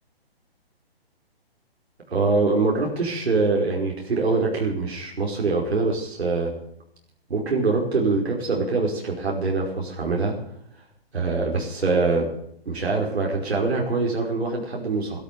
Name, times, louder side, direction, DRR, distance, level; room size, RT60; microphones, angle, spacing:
voice 1, 2.1-6.5 7.3-10.3 11.1-12.3 12.6-15.2, right 3 dB, 85° right, -1 dB, 5.1 m, -24 dB
15.0 x 13.0 x 6.9 m, 0.72 s
hypercardioid pair, 160°, 31 cm